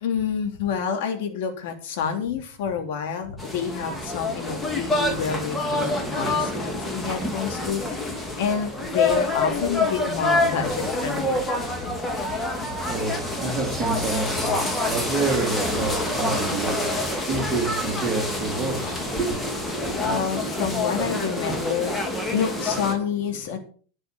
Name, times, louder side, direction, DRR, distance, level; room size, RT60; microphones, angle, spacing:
voice 1, 0.0-11.5 20.0-23.6, left 7 dB, 50° left, 3.3 m, -28 dB
sound 1, 3.4-22.9, left 2 dB, 10° left, 2.5 m, -27 dB
voice 2, 12.3-19.4, right 3 dB, 15° right, 3.2 m, -28 dB
11.5 x 7.8 x 6.9 m
figure-of-eight pair, 90°, 0 cm